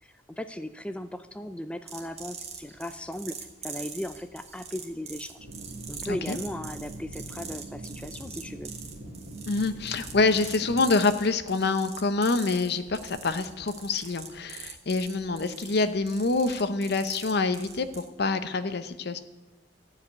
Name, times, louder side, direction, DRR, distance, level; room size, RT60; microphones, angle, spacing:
voice 1, 0.0-3.4 3.6-5.4 5.9-8.7, left 1 dB, 5° left, 9 dB, 0.4 m, -37 dB
sound 1, 1.9-18.1, right 6 dB, 35° right, 1.5 m, -44 dB
sound 2, 5.4-10.9, right 1 dB, 90° right, 2.3 m, -42 dB
voice 2, 6.0-6.4 9.5-19.2, left 3 dB, 60° left, 11 dB, 0.7 m, -26 dB
14.0 x 5.0 x 9.4 m, 1.1 s
head